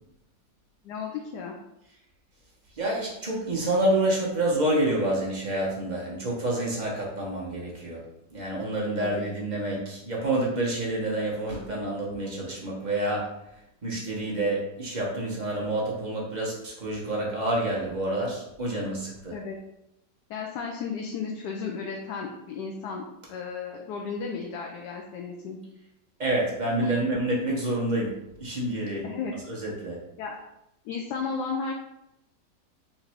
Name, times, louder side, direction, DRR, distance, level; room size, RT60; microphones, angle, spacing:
voice 1, 0.8-1.5 9.0-9.2 19.3-19.6 20.3-25.6 26.8-27.0 29.0-29.3 30.2-30.4 30.8-31.7, left 5 dB, 80° left, 0 dB, 1.1 m, -34 dB
voice 2, 2.7-8.0 8.3-13.3 13.8-19.4 26.2-29.1 29.5-30.0, right 1 dB, 30° right, -4 dB, 1.0 m, -28 dB
4.1 x 2.6 x 4.5 m, 0.84 s
omnidirectional pair, 1.8 m